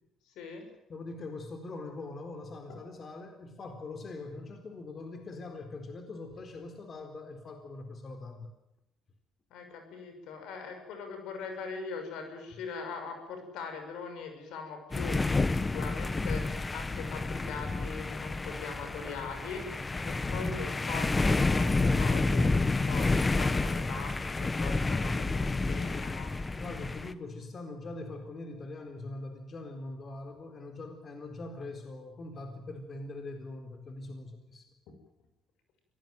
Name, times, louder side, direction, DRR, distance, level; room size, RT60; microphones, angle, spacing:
voice 1, 0.3-0.7 9.5-26.3 34.9-35.0, left 5 dB, 80° left, 6 dB, 6.3 m, -41 dB
voice 2, 0.9-8.5 20.2-20.6 26.5-34.6, left 2 dB, 45° left, 5 dB, 4.2 m, -42 dB
sound 1, 14.9-27.1, left 3 dB, 20° left, 1.2 m, -29 dB
24.0 x 18.5 x 9.3 m, 0.84 s
cardioid pair, 85°, 0 cm